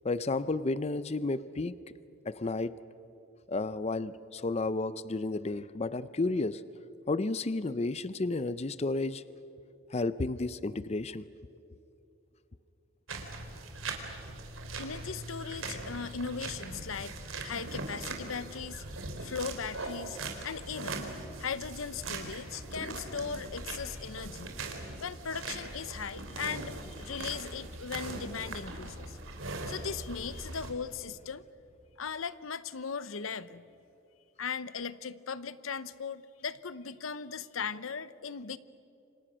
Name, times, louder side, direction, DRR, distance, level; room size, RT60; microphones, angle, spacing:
voice 1, 0.0-1.8 2.3-2.8 3.5-6.6 7.1-9.2 9.9-11.3, left 2 dB, 30° left, 15 dB, 0.5 m, -32 dB
sound 1, 13.1-30.7, right 3 dB, 80° right, 3.4 m, -41 dB
voice 2, 14.8-18.8 19.2-21.1 21.4-24.5 25.0-29.2 29.7-31.4 32.0-33.6 34.4-38.6, left 6 dB, 85° left, 16 dB, 0.8 m, -38 dB
29.0 x 25.5 x 6.2 m, 2.8 s
head